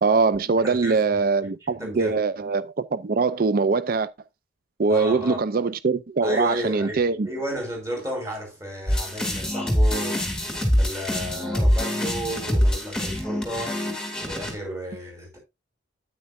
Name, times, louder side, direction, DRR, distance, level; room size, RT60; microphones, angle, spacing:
voice 1, 0.0-4.1 4.8-7.3, right 4 dB, 50° right, 0.5 m, -22 dB
voice 2, 0.6-1.2 1.8-2.2 4.9-5.4 6.2-7.0 7.2-10.2 10.7-13.8 14.2-15.4, equal, 15° right, 5.5 m, -33 dB
sound 1, 8.9-14.5, equal, 5° left, 2.9 m, -24 dB
9.5 x 9.2 x 2.6 m
head